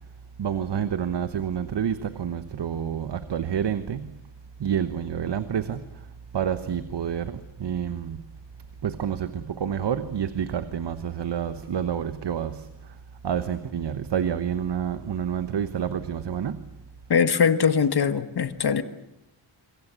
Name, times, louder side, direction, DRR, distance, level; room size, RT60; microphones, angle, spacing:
voice 1, 0.4-4.1 4.6-6.1 6.3-8.2 8.8-12.9 13.2-16.7, right 8 dB, 60° right, 1.1 m, -28 dB
voice 2, 17.1-18.8, left 6 dB, 55° left, 1.4 m, -21 dB
26.5 x 23.0 x 8.2 m
wide cardioid pair, 180°, 47 cm